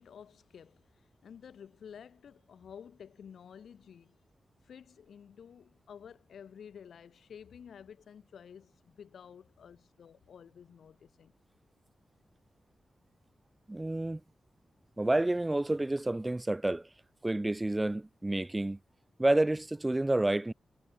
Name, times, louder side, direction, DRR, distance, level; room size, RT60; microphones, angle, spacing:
voice 1, 0.0-4.2 4.6-11.3, left 7 dB, 85° left, 5.6 m, -52 dB
voice 2, 13.7-14.2 15.0-16.9 17.2-18.8 19.2-20.5, right 2 dB, 15° right, 0.8 m, -29 dB
wide cardioid pair, 145°, 0 cm